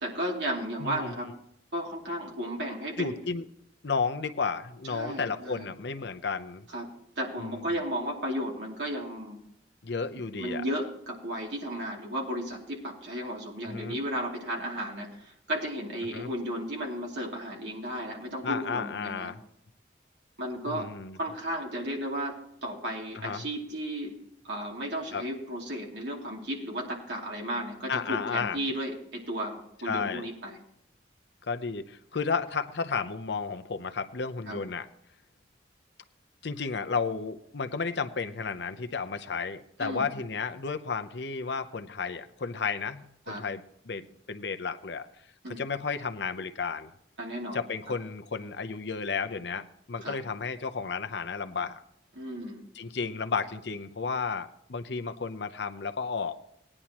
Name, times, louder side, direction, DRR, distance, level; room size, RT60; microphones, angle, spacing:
voice 1, 0.0-1.3 1.7-3.2 4.9-5.7 6.7-9.4 10.4-19.3 20.4-20.9 21.2-24.2 24.4-30.6 34.5-34.6 39.8-40.1 43.3-43.4 45.4-45.6 47.2-47.6 50.0-50.2 52.2-52.6, equal, 70° right, -1 dB, 2.9 m, -34 dB
voice 2, 0.8-1.1 3.0-3.4 3.8-6.6 7.4-7.8 9.8-10.6 13.6-14.0 16.1-16.3 18.4-19.4 20.7-21.2 23.1-23.4 25.1-25.2 27.9-28.6 29.8-30.3 31.5-34.9 36.4-45.1 45.5-46.9 47.5-51.8 52.7-56.4, left 5 dB, 70° left, 9 dB, 0.7 m, -33 dB
19.0 x 9.9 x 3.0 m, 0.76 s
head